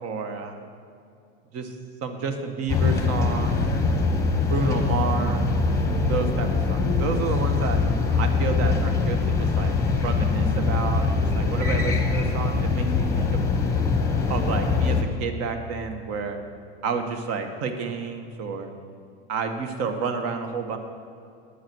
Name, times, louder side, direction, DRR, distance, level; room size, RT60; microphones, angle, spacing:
voice 1, 0.0-0.6 1.5-1.7 2.0-3.7 4.4-5.6 6.0-7.8 8.2-13.4 14.3-16.4 16.8-18.7 19.3-20.8, right 5 dB, 40° right, 6 dB, 1.3 m, -30 dB
sound 1, 2.7-15.0, left 4 dB, 10° left, 1.1 m, -23 dB
10.0 x 9.4 x 6.1 m, 2.5 s
supercardioid pair, 140°, 36 cm